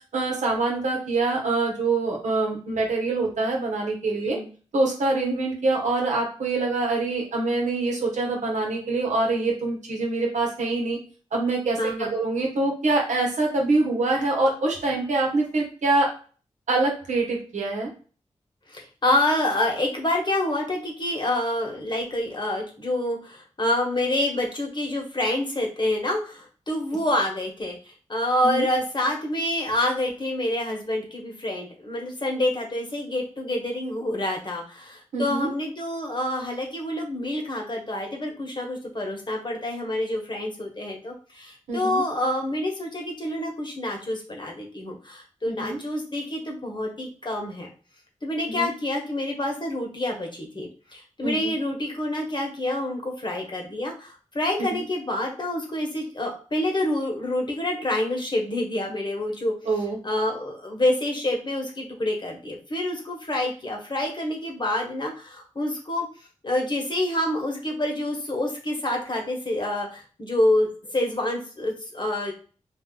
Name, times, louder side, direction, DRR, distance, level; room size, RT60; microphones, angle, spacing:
voice 1, 0.1-4.4 4.7-11.0 11.3-16.1 16.7-17.9 28.4-28.6 35.1-35.5 41.7-42.0 45.5-45.8 48.5-48.7 51.2-51.6 54.6-54.8 59.7-60.0, right 3 dB, 85° right, -1 dB, 1.0 m, -25 dB
voice 2, 11.8-12.1 18.7-47.7 48.2-59.5 60.0-66.1 66.4-72.3, left 1 dB, 40° left, 0 dB, 1.1 m, -27 dB
2.5 x 2.4 x 3.7 m, 0.38 s
cardioid pair, 45°, 12 cm